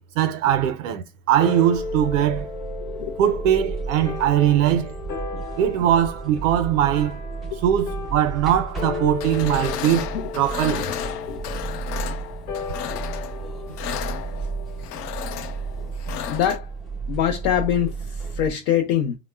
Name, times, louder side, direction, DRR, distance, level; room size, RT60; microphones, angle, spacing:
voice 1, 0.2-2.5 3.2-5.0 5.6-7.2 7.6-10.1 10.3-10.9, right 10 dB, 55° right, 0.5 m, -21 dB
sound 1, 1.4-16.1, left 5 dB, 65° left, 1.0 m, -36 dB
sound 2, 1.7-18.5, right 4 dB, ahead, 0.4 m, -34 dB
voice 2, 2.8-3.2 5.3-5.4 7.5-7.6 10.1-10.3 11.3-11.4 14.4-14.5 16.3-16.7 17.1-19.2, left 10 dB, 45° left, 0.7 m, -24 dB
sound 3, 9.2-16.6, left 10 dB, 85° left, 0.6 m, -33 dB
3.0 x 2.1 x 2.2 m
hypercardioid pair, 120°, 46 cm